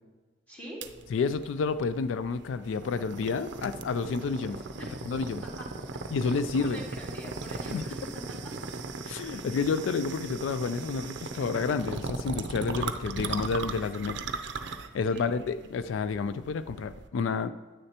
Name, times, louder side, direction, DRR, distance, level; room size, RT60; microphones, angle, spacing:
voice 1, 0.5-0.8 4.6-5.0 5.4-5.7 6.2-8.7 15.1-15.6, equal, 10° left, -5 dB, 2.2 m, -44 dB
sound 1, 0.8-17.1, right 4 dB, 65° right, 0.5 m, -38 dB
voice 2, 1.1-4.6 5.0-5.4 6.1-6.8 7.7-7.9 9.1-14.3 14.9-17.5, left 5 dB, 85° left, 13 dB, 0.3 m, -30 dB
9.8 x 8.8 x 2.9 m, 1.3 s
head